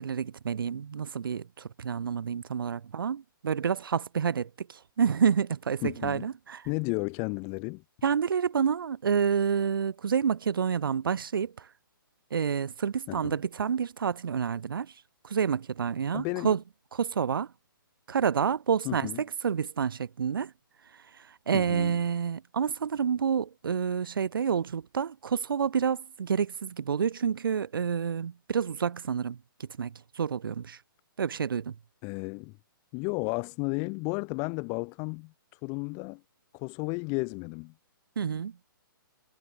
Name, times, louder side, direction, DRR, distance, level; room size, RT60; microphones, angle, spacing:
voice 1, 0.0-6.6 8.0-11.7 12.3-14.9 15.2-16.6 16.9-17.5 18.1-20.5 21.5-30.8 31.2-31.7 38.2-38.5, right 7 dB, 70° right, 2.5 m, -29 dB
voice 2, 5.8-6.3 6.7-7.8 13.1-13.4 16.1-16.5 18.8-19.2 21.5-22.0 32.0-32.5 32.9-35.3 35.6-36.2 36.5-37.7, left 35 dB, 25° left, 3.7 m, -33 dB
hypercardioid pair, 160°, 12 cm